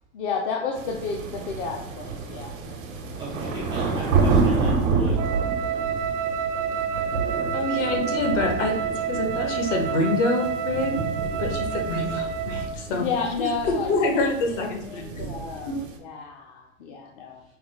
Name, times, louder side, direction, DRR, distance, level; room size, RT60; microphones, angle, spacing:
voice 1, 0.1-2.5 3.1-3.5 12.9-17.4, left 5 dB, 45° left, 0 dB, 0.5 m, -32 dB
sound 1, 0.7-16.0, right 4 dB, 90° right, 0.9 m, -29 dB
voice 2, 3.2-5.2, right 2 dB, 10° right, -5 dB, 0.4 m, -33 dB
Wind instrument woodwind instrument, 5.1-12.8, right 7 dB, 70° right, 0.5 m, -29 dB
voice 3, 7.5-8.8 9.0-11.0 11.3-13.1 13.6-15.1 15.7-15.8, left 2 dB, 65° left, 3 dB, 1.1 m, -26 dB
5.3 x 2.2 x 2.9 m, 0.83 s
supercardioid pair, 155°, 38 cm